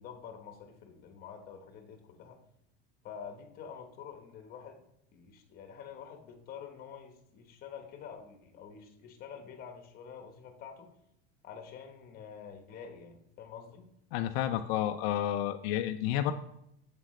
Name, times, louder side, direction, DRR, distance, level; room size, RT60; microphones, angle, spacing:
voice 1, 0.0-2.4 3.0-4.8 5.1-10.9 11.4-13.9, left 7 dB, 30° left, 5 dB, 1.1 m, -47 dB
voice 2, 14.1-16.3, left 11 dB, 75° left, 7 dB, 0.6 m, -30 dB
7.6 x 7.5 x 3.2 m, 0.77 s
cardioid pair, 175°, 31 cm